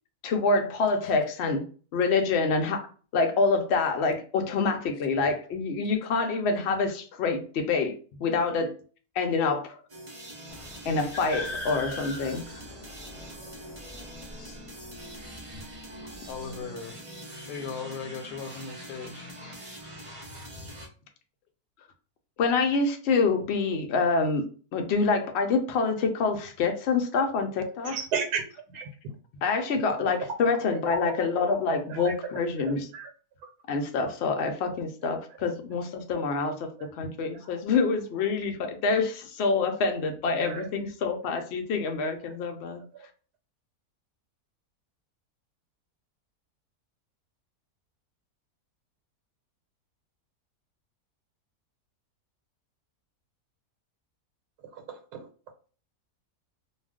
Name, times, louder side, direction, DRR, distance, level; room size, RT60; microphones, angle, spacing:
voice 1, 0.2-1.7 1.9-8.8 9.2-9.8 10.8-12.6 22.4-24.4 24.7-28.0 29.4-32.9 33.7-42.8, left 4 dB, 70° left, 0.6 m, -26 dB
sound 1, 9.9-20.9, right 1 dB, 35° right, 0.6 m, -44 dB
sound 2, 10.5-16.7, left 1 dB, 15° left, 0.9 m, -42 dB
voice 2, 16.3-17.0 17.5-19.3, left 5 dB, 90° left, 1.1 m, -38 dB
voice 3, 27.8-28.4 28.7-28.9 30.7-31.2 31.9-32.4 32.9-33.1 36.8-36.9 37.4-37.5 40.4-40.7 42.0-42.1 42.9-43.1 54.7-55.3, right 6 dB, 85° right, 1.1 m, -34 dB
2.4 x 2.3 x 3.4 m
omnidirectional pair, 1.6 m